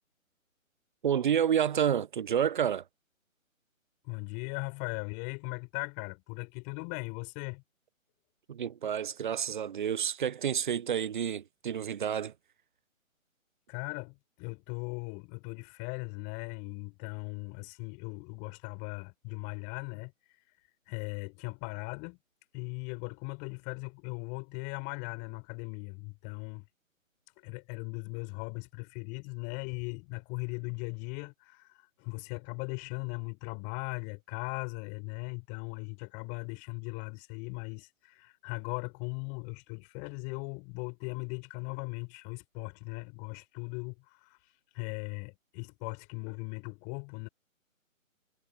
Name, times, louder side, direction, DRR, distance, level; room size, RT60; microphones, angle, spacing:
voice 1, 1.0-2.8 8.5-12.3, right 8 dB, 35° right, 1.0 m, -29 dB
voice 2, 4.0-7.6 13.7-20.1 20.9-22.2 22.5-26.7 27.4-44.4 44.7-47.3, left 34 dB, 20° left, 6.0 m, -39 dB
figure-of-eight pair, 145°, 41 cm